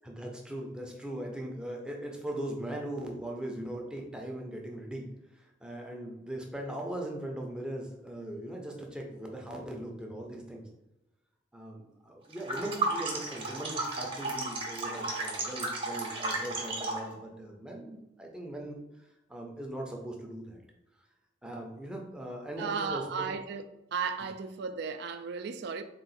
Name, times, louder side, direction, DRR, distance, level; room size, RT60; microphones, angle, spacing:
voice 1, 0.0-5.1 5.3-10.7 11.5-20.6 21.4-23.3, right 1 dB, 5° right, 0.6 m, -40 dB
sound 1, 12.3-17.1, right 2 dB, 30° right, 0.8 m, -34 dB
voice 2, 22.6-23.7 23.9-25.8, right 5 dB, 65° right, 0.4 m, -34 dB
3.7 x 2.4 x 4.0 m
head